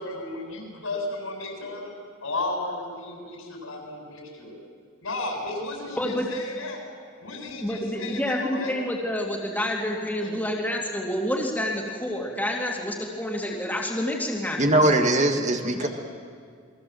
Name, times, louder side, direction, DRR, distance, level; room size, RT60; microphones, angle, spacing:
voice 1, 0.0-1.9 2.2-4.5 5.0-6.8 7.2-8.7 10.2-10.5 15.6-15.9, left 2 dB, 75° left, 1 dB, 7.5 m, -34 dB
voice 2, 6.0-6.3 7.6-14.6, left 1 dB, 10° left, -2 dB, 2.6 m, -28 dB
voice 3, 14.6-15.9, right 1 dB, 35° right, 4 dB, 1.7 m, -21 dB
28.5 x 21.5 x 7.8 m, 2.1 s
head